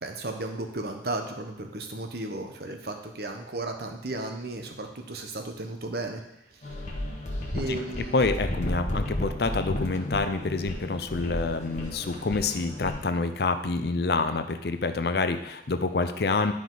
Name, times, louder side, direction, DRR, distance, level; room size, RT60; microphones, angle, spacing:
voice 1, 0.0-6.2 6.5-6.6 7.5-8.2, right 2 dB, 60° right, 4 dB, 1.0 m, -34 dB
sound 1, 6.6-13.0, left 1 dB, 40° left, 1.3 m, -33 dB
voice 2, 8.1-16.5, left 3 dB, 60° left, 9 dB, 0.6 m, -27 dB
11.0 x 4.9 x 3.9 m, 0.85 s
head